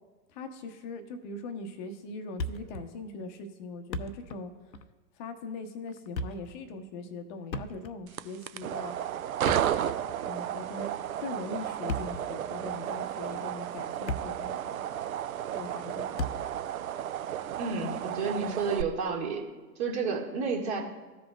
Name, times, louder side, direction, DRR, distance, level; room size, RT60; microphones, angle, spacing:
voice 1, 0.3-4.5 5.2-8.9 10.2-10.9 11.2-14.8 15.5-16.3, left 3 dB, 30° left, 8 dB, 0.7 m, -41 dB
Thump thud, 2.4-2.9 3.2-3.3 3.7-4.5 4.7-4.9 5.9-6.5 7.5-8.1 9.3-10.3 11.7-12.3 13.0-13.2 13.7-14.5 14.8-14.9 16.2-16.6, left 1 dB, 85° left, 0.7 m, -36 dB
sound 1, 8.1-18.8, right 10 dB, 60° right, 0.5 m, -33 dB
voice 2, 17.6-19.4 19.8-20.8, right 4 dB, 40° right, -1 dB, 1.8 m, -30 dB
15.0 x 5.2 x 2.3 m, 1.3 s
figure-of-eight pair, 105°, 50 cm